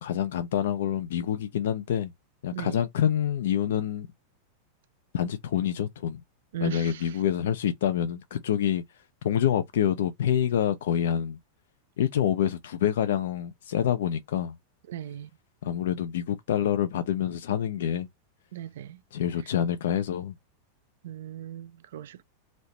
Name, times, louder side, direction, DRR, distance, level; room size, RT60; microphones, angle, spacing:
voice 1, 0.0-2.1 2.4-4.1 5.1-6.2 6.6-8.8 9.2-11.4 12.0-14.6 15.6-18.1 19.1-20.4, left 10 dB, 60° left, 0.4 m, -27 dB
voice 2, 6.5-7.2 14.9-15.3 18.5-19.0 21.0-22.2, right 11 dB, 60° right, 0.3 m, -37 dB
3.1 x 2.7 x 3.0 m
figure-of-eight pair, 90°, 0 cm